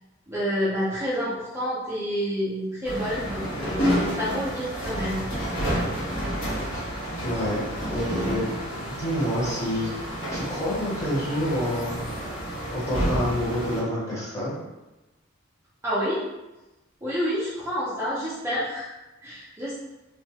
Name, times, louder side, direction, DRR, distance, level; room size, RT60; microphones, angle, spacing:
voice 1, 0.3-5.3 15.8-16.2 17.0-18.9 19.2-19.8, equal, 15° right, -10 dB, 0.4 m, -28 dB
sound 1, 2.8-13.8, equal, 75° left, 1.0 m, -30 dB
voice 2, 7.2-8.6 8.9-9.9 10.3-12.0 12.7-14.6, equal, 15° left, -8 dB, 0.8 m, -28 dB
2.2 x 2.1 x 2.7 m, 1.0 s
head